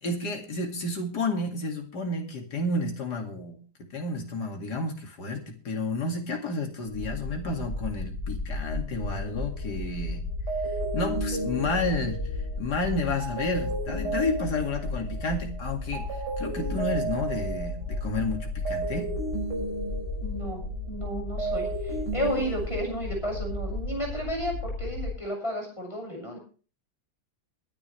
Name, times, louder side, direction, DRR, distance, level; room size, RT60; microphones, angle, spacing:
voice 1, 0.0-10.2 10.9-12.3 12.6-16.1 16.4-19.1, left 2 dB, 75° left, 3 dB, 2.8 m, -31 dB
sound 1, 6.9-25.1, left 2 dB, 90° left, 4.0 m, -34 dB
sound 2, 9.0-10.0 10.5-15.6 15.9-20.9 21.2-23.4, right 3 dB, 80° right, 6.7 m, -34 dB
voice 2, 20.2-20.6 20.9-26.4, equal, 15° left, -1 dB, 6.6 m, -32 dB
22.0 x 10.0 x 3.3 m, 0.38 s
omnidirectional pair, 1.8 m